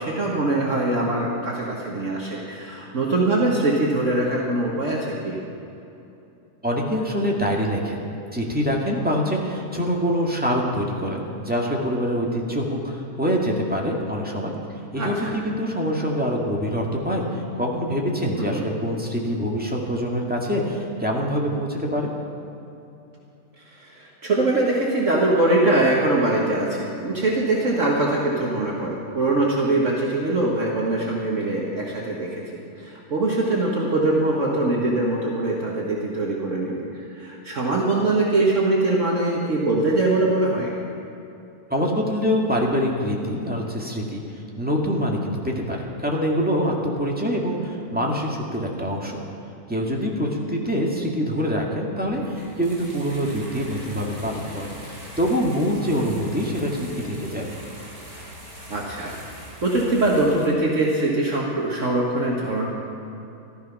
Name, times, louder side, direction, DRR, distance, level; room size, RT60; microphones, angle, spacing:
voice 1, 0.0-5.4 15.0-15.4 18.5-18.6 23.6-32.4 32.8-40.7 55.9-56.1 58.7-59.1 59.6-62.7, right 2 dB, 55° right, -3 dB, 1.8 m, -22 dB
voice 2, 6.6-14.5 14.9-22.1 41.7-44.2 44.6-49.2 49.7-54.7 55.2-57.5, equal, 5° right, -2 dB, 1.8 m, -25 dB
sound 1, 52.1-60.5, equal, 70° right, 4.7 m, -42 dB
14.0 x 13.0 x 5.9 m, 2.8 s
omnidirectional pair, 1.6 m